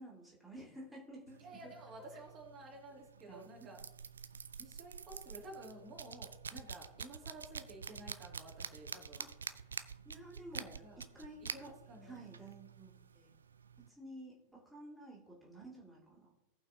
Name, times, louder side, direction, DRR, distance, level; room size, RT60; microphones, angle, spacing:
voice 1, 0.0-1.7 2.1-2.2 3.3-3.8 9.2-9.6 10.0-11.7 12.0-13.3 13.8-16.3, right 1 dB, ahead, -6 dB, 2.4 m, -52 dB
sound 1, 1.3-13.9, right 6 dB, 70° right, 0.4 m, -48 dB
voice 2, 1.4-3.8 4.6-9.2 10.5-11.0 11.5-12.3, right 1 dB, 30° right, -2 dB, 2.6 m, -52 dB
17.5 x 5.8 x 2.8 m, 0.99 s
figure-of-eight pair, 90°, 0 cm